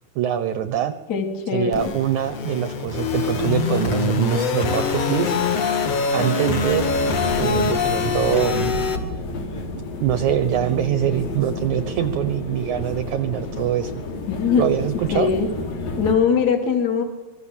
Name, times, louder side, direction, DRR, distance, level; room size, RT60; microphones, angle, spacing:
voice 1, 0.2-0.9 1.5-5.7 6.1-6.9 7.4-8.7 10.0-14.0 14.6-15.3, right 10 dB, 65° right, 12 dB, 2.1 m, -23 dB
voice 2, 1.1-1.8 14.3-14.7 15.1-15.5 16.0-17.0, left 6 dB, 30° left, 5 dB, 2.6 m, -21 dB
sound 1, 1.7-9.0, left 5 dB, 50° left, 2.7 m, -24 dB
sound 2, 6.6-16.2, left 2 dB, 65° left, 4.2 m, -30 dB
25.5 x 23.5 x 7.4 m, 1.2 s
omnidirectional pair, 4.3 m